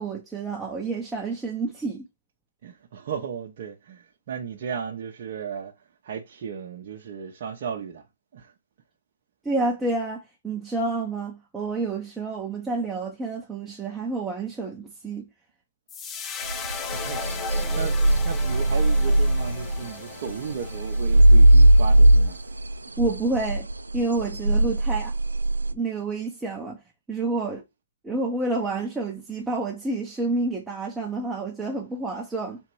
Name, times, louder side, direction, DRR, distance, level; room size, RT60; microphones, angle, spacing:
voice 1, 0.0-2.1 9.4-15.3 23.0-23.7 23.9-25.2 25.7-26.8 27.1-27.6 28.0-32.6, right 3 dB, 10° right, 0.8 m, -29 dB
voice 2, 2.6-5.7 6.0-8.0 8.3-8.5 16.9-18.0 18.2-22.4, right 7 dB, 50° right, 0.8 m, -35 dB
sound 1, 15.9-22.3, left 6 dB, 20° left, 0.5 m, -37 dB
sound 2, 16.5-19.8 20.3-25.7, right 1 dB, 85° right, 0.4 m, -19 dB
3.5 x 2.9 x 4.6 m
figure-of-eight pair, 130°, 0 cm